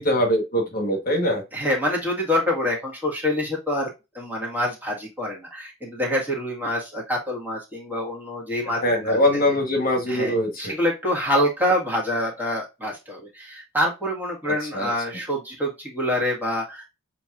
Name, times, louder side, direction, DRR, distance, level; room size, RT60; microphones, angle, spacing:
voice 1, 0.0-1.4 8.8-10.7 14.4-14.9, left 1 dB, 45° left, 2 dB, 1.2 m, -22 dB
voice 2, 1.5-3.9 4.1-9.2 10.1-16.9, left 1 dB, 10° right, -3 dB, 1.8 m, -26 dB
6.9 x 2.9 x 2.5 m, 0.24 s
head